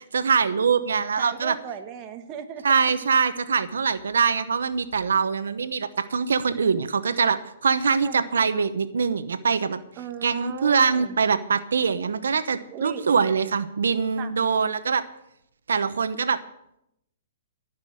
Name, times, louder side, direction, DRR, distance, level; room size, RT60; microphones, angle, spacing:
voice 1, 0.1-1.5 2.6-9.8 10.2-15.0 15.7-16.4, right 5 dB, 90° right, 12 dB, 0.9 m, -23 dB
voice 2, 1.2-3.0 7.8-8.2 10.0-11.2 12.7-13.1 14.2-14.3, right 8 dB, 25° right, 5 dB, 1.3 m, -36 dB
17.0 x 6.1 x 8.6 m, 0.80 s
hypercardioid pair, 155°, 0 cm